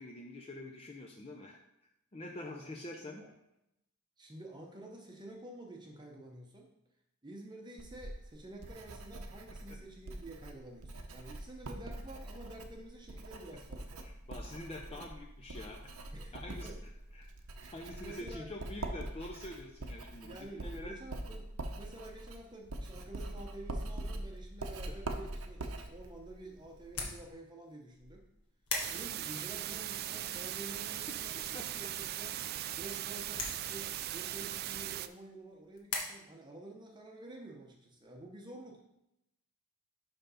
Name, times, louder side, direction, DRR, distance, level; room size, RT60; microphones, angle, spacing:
voice 1, 0.0-1.6 2.1-3.2 9.7-9.8 14.0-15.9 16.3-16.7 17.1-17.3 17.7-21.0 24.9-25.0 31.4-31.7, left 1 dB, 25° left, 1 dB, 0.5 m, -46 dB
voice 2, 4.2-6.7 7.2-14.0 14.9-15.1 16.1-16.8 17.9-18.5 20.2-21.5 21.8-28.3 28.9-32.5 32.8-38.8, right 2 dB, 20° right, 1 dB, 0.8 m, -50 dB
Writing, 7.8-27.3, right 1 dB, 75° right, 0.8 m, -44 dB
sound 1, 25.5-36.0, left 4 dB, 80° left, 1.6 m, -45 dB
sound 2, 28.8-35.1, right 12 dB, 45° right, 0.3 m, -39 dB
5.7 x 5.3 x 5.6 m, 0.85 s
head